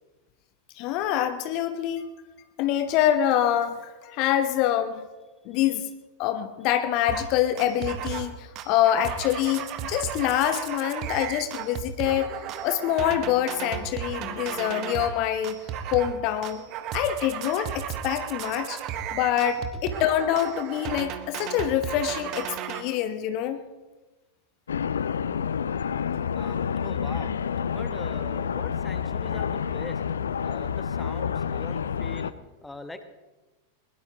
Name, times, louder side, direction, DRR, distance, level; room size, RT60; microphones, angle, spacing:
voice 1, 0.8-2.1 2.6-3.8 4.0-5.0 5.5-5.8 6.2-8.3 8.7-12.3 12.6-15.6 15.9-16.6 16.9-18.8 19.1-23.6, left 11 dB, 40° left, 10 dB, 1.1 m, -25 dB
sound 1, 7.1-7.3 7.6-8.3 8.6-15.2 15.4-16.2 16.4-22.8, right 9 dB, 40° right, 1.4 m, -34 dB
sound 2, 24.7-32.3, left 7 dB, 70° left, 0.5 m, -29 dB
voice 2, 26.3-27.3 27.7-30.0 30.4-32.3 32.6-33.0, left 2 dB, 5° left, 9 dB, 1.3 m, -42 dB
21.0 x 21.0 x 3.0 m, 1.2 s
figure-of-eight pair, 90°, 0 cm